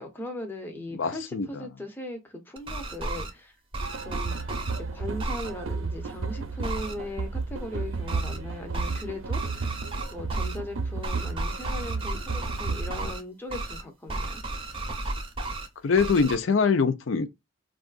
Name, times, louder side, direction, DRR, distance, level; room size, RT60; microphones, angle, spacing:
voice 1, 0.0-3.5 4.0-4.5 4.9-9.8 10.1-14.4, left 1 dB, 10° left, 0.6 m, -38 dB
voice 2, 0.9-1.5 15.8-17.3, left 5 dB, 70° left, 0.5 m, -23 dB
sound 1, 2.6-3.3 3.7-4.8 5.2-5.5 6.6-6.9 8.1-8.4 8.7-9.0 9.3-10.6 11.0-13.2 13.5-13.8 14.1-15.7 16.0-16.4, right 2 dB, 25° right, 0.7 m, -33 dB
sound 2, 3.8-13.1, right 4 dB, 80° right, 0.6 m, -33 dB
3.5 x 2.4 x 2.3 m
head